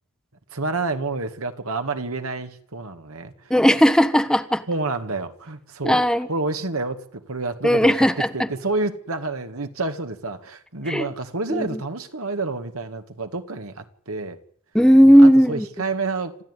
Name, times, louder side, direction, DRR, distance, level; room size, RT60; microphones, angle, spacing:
voice 1, 0.5-3.5 4.7-6.0 6.3-14.4 15.0-16.4, right 3 dB, 65° right, 1.9 m, -29 dB
voice 2, 3.5-4.7 5.8-6.3 7.6-8.3 10.9-11.0 11.5-11.8 14.7-15.7, equal, 5° left, 1.0 m, -15 dB
27.0 x 14.0 x 9.7 m
head